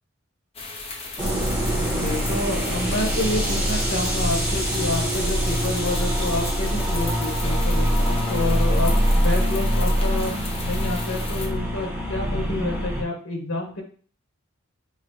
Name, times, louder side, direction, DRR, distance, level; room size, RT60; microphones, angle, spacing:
sound 1, 0.5-11.5, left 3 dB, 30° left, 0.6 m, -36 dB
sound 2, 1.2-13.0, equal, 5° right, 0.8 m, -24 dB
voice 1, 1.8-10.3 10.6-13.8, left 2 dB, 80° left, 1 dB, 1.2 m, -29 dB
6.3 x 2.1 x 3.1 m, 0.43 s
head